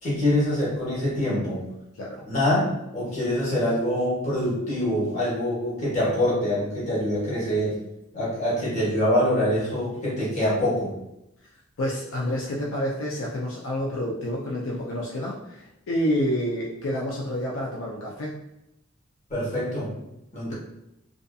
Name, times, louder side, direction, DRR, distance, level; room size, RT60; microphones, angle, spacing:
voice 1, 0.0-1.6 2.2-2.6 2.9-7.7 8.1-10.9 19.3-19.9 20.3-20.5, left 1 dB, 35° left, -8 dB, 1.1 m, -25 dB
voice 2, 11.8-18.4, equal, 75° left, -3 dB, 0.4 m, -28 dB
2.6 x 2.4 x 2.3 m, 0.86 s
head